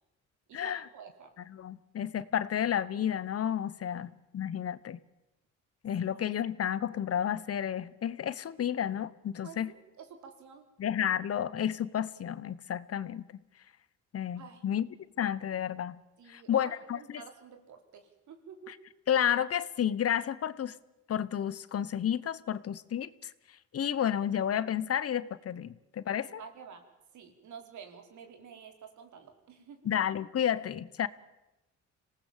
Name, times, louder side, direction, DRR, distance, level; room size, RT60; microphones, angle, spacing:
voice 1, 0.5-1.3 6.0-6.1 9.4-10.7 14.4-14.6 16.2-18.8 26.3-26.8 27.1-29.9, right 6 dB, 75° right, 6 dB, 4.1 m, -50 dB
voice 2, 1.5-5.0 5.8-9.7 10.8-13.2 14.1-14.9 15.2-16.0 16.3-17.0 19.1-20.7 21.1-23.3 23.7-26.4 29.8-31.1, left 9 dB, 50° left, 17 dB, 1.1 m, -31 dB
26.0 x 18.5 x 7.5 m, 0.96 s
cardioid pair, 90°, 30 cm